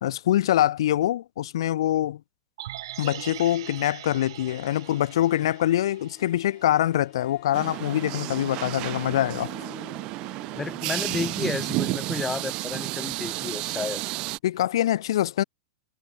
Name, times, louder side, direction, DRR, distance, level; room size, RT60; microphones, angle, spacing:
voice 1, 0.0-2.2 3.0-9.5 14.4-15.4, left 12 dB, 70° left, 0.4 m, -24 dB
sound 1, 2.6-6.8 7.1-7.2, right 14 dB, 60° right, 6.9 m, -42 dB
Harp, 4.1-4.2 4.4-13.9, left 21 dB, 30° left, 5.1 m, -52 dB
sound 2, 7.5-14.4, right 21 dB, 30° right, 0.9 m, -31 dB
voice 2, 10.6-14.0, left 4 dB, 10° left, 0.4 m, -32 dB
supercardioid pair, 170°, 3 cm